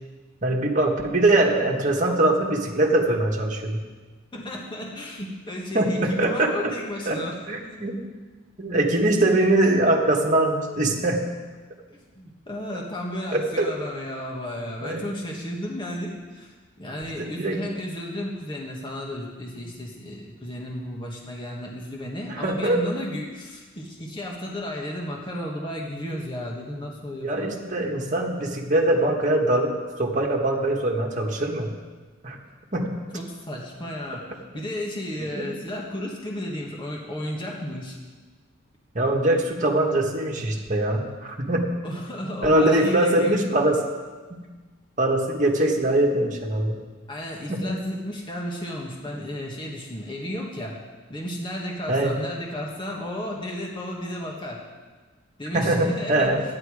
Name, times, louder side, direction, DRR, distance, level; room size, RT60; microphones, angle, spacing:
voice 1, 0.4-3.8 5.7-6.5 7.0-7.2 7.5-7.9 8.6-11.2 13.3-13.7 14.8-15.0 17.2-17.7 19.5-19.7 22.3-22.8 27.2-31.7 32.2-32.4 32.7-32.9 35.2-35.4 38.9-41.6 42.4-43.8 45.0-46.8 47.5-47.7 51.9-52.2 55.5-56.4, right 1 dB, 35° right, 0 dB, 1.6 m, -22 dB
voice 2, 4.3-7.3 11.9-27.5 33.1-34.3 34.5-37.9 41.8-43.4 47.1-50.8 51.1-54.6 55.4-56.3, left 1 dB, 25° left, -2 dB, 1.4 m, -33 dB
12.5 x 10.0 x 4.9 m, 1.3 s
head